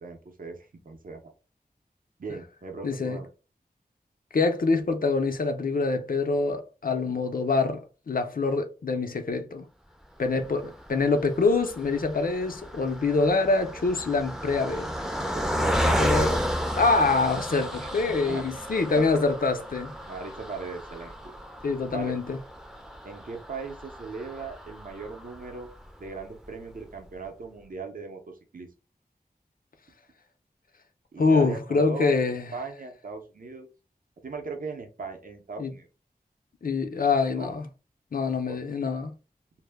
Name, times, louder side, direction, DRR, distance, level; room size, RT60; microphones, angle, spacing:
voice 1, 0.0-1.3 2.2-3.3 10.3-10.6 15.3-16.3 17.8-17.9 18.3-18.4 19.0-19.1 20.1-21.3 21.9-22.2 23.0-25.7 26.0-28.7 31.1-33.7 34.2-35.9 37.3-37.6 38.3-38.6, right 4 dB, 60° right, 0.6 m, -39 dB
voice 2, 2.8-3.2 4.3-9.6 10.2-14.9 15.8-16.4 16.8-19.9 21.6-22.4 31.2-32.5 35.6-35.7 36.6-37.7 38.1-39.1, left 3 dB, 60° left, 0.5 m, -25 dB
Car passing by, 10.4-25.9 26.4-26.5 26.8-27.0, equal, 5° right, 0.4 m, -32 dB
2.1 x 2.0 x 3.3 m
wide cardioid pair, 60°, 16 cm